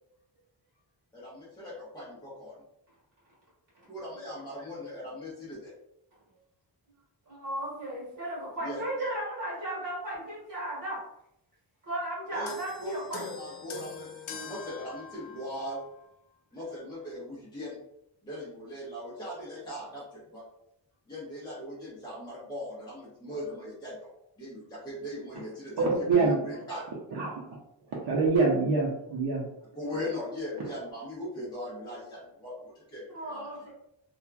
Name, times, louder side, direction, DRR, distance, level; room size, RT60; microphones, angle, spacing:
voice 1, 1.1-2.6 3.9-5.8 8.6-8.8 12.3-12.5 12.8-14.1 14.4-15.8 16.5-17.8 18.2-20.4 21.1-26.9 29.8-33.5, left 1 dB, 10° left, -8 dB, 0.7 m, -39 dB
voice 2, 7.3-11.0 11.8-13.2 33.1-33.7, right 1 dB, 45° right, -6 dB, 1.2 m, -35 dB
sound 1, 12.5-16.1 17.0-17.1, left 5 dB, 85° left, 0.6 m, -44 dB
voice 3, 25.8-26.4 27.1-27.4 28.0-29.4, right 4 dB, 60° right, -4 dB, 0.7 m, -25 dB
2.8 x 2.3 x 2.3 m, 0.79 s
wide cardioid pair, 135°, 45 cm